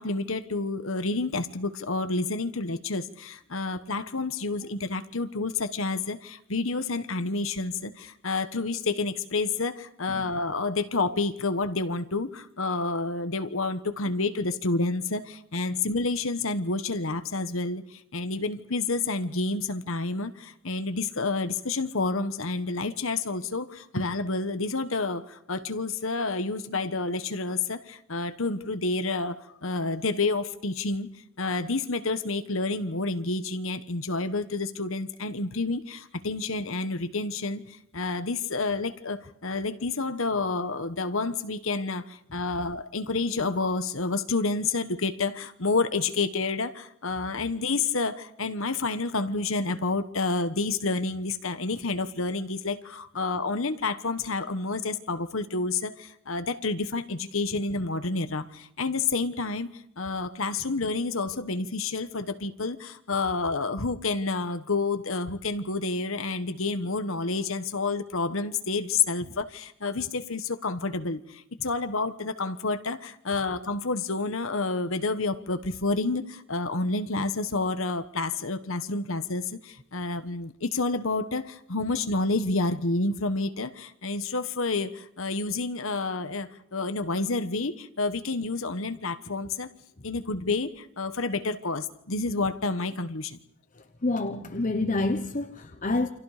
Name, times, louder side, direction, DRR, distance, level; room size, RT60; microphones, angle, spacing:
voice 1, 0.0-31.1 31.4-59.7 60.0-89.7 90.0-93.4, left 3 dB, 70° left, 10 dB, 1.3 m, -29 dB
voice 2, 93.8-96.1, left 2 dB, 35° left, 7 dB, 1.0 m, -28 dB
29.5 x 26.0 x 5.0 m, 0.70 s
head